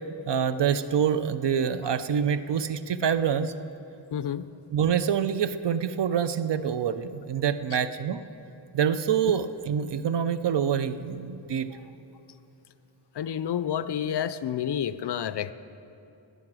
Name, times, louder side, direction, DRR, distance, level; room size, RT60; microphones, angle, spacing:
voice 1, 0.3-3.5 4.7-8.2 8.7-11.7, right 8 dB, 65° right, 12 dB, 0.6 m, -26 dB
voice 2, 4.1-4.5 13.2-15.5, left 9 dB, 60° left, 14 dB, 0.5 m, -29 dB
14.5 x 9.9 x 6.1 m, 2.8 s
wide cardioid pair, 130°, 46 cm